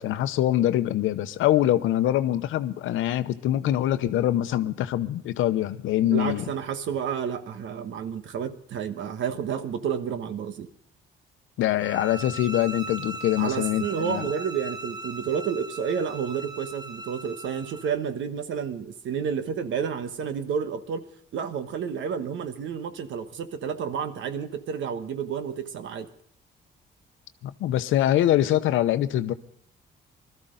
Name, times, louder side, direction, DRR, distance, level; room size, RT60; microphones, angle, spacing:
voice 1, 0.0-6.5 11.6-14.3 27.4-29.3, left 13 dB, 85° left, 0.8 m, -24 dB
voice 2, 6.1-10.7 13.4-21.1 21.3-26.1, right 7 dB, 75° right, 1.2 m, -30 dB
sound 1, 11.8-17.9, right 2 dB, 20° right, 0.7 m, -39 dB
21.0 x 13.5 x 3.8 m
cardioid pair, 90°, 20 cm